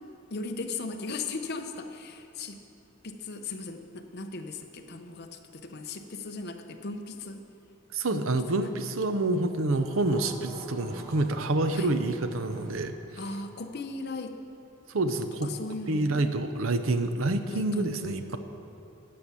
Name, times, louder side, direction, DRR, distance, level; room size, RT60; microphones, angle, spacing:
voice 1, 0.3-2.6 3.0-7.4 8.1-8.3 11.7-11.9 13.2-14.4 15.1-16.4 17.5-18.2, left 3 dB, 50° left, 5 dB, 0.8 m, -37 dB
voice 2, 7.9-13.0 14.9-15.5 15.9-18.4, right 2 dB, 70° right, 9 dB, 0.7 m, -27 dB
sound 1, 9.7-12.8, equal, 15° right, 1.9 m, -45 dB
13.0 x 5.7 x 8.2 m, 2.9 s
head